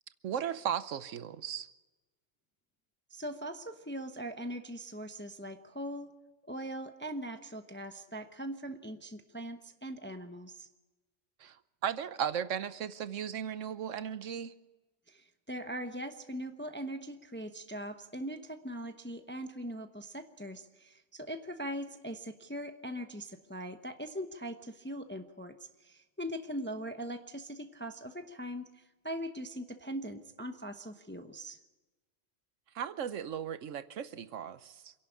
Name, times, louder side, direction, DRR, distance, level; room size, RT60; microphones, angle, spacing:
voice 1, 0.2-1.7 11.4-11.6 11.8-14.5 32.7-34.9, right 8 dB, 80° right, 14 dB, 1.2 m, -36 dB
voice 2, 3.1-6.1 6.4-10.7 15.1-31.6, equal, 10° left, 7 dB, 0.9 m, -41 dB
27.0 x 11.5 x 8.5 m, 1.1 s
omnidirectional pair, 1.3 m